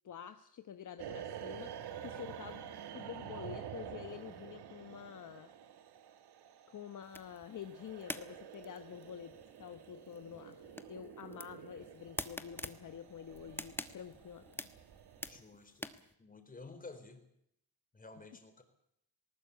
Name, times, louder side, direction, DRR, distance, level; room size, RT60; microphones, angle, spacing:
voice 1, 0.0-1.7 2.0-2.6 2.9-5.5 6.7-9.3 9.6-14.8, left 9 dB, 50° left, 8 dB, 1.2 m, -48 dB
sound 1, 1.0-15.4, right 9 dB, 90° right, 1.9 m, -49 dB
sound 2, 7.0-16.1, left 1 dB, 5° left, 1.2 m, -48 dB
voice 2, 15.2-15.9 16.2-17.2 17.9-18.6, left 3 dB, 20° left, 7 dB, 3.9 m, -52 dB
19.5 x 19.5 x 8.3 m, 0.74 s
wide cardioid pair, 155°, 38 cm